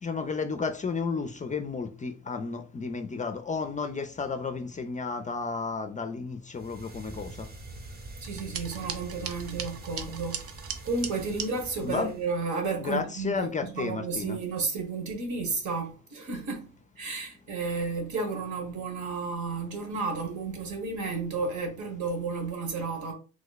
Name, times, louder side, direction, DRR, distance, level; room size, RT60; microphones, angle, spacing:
voice 1, 0.0-7.5 11.8-12.1 12.8-14.4, left 4 dB, 25° left, 0.4 m, -32 dB
sound 1, 6.5-12.4, right 2 dB, 30° right, 0.8 m, -44 dB
sound 2, 8.2-11.5, right 7 dB, 50° right, 0.5 m, -38 dB
voice 2, 8.2-10.5 10.8-16.7 17.0-23.1, right 4 dB, 70° right, 1.3 m, -32 dB
3.0 x 2.1 x 3.9 m
cardioid pair, 90°, 30 cm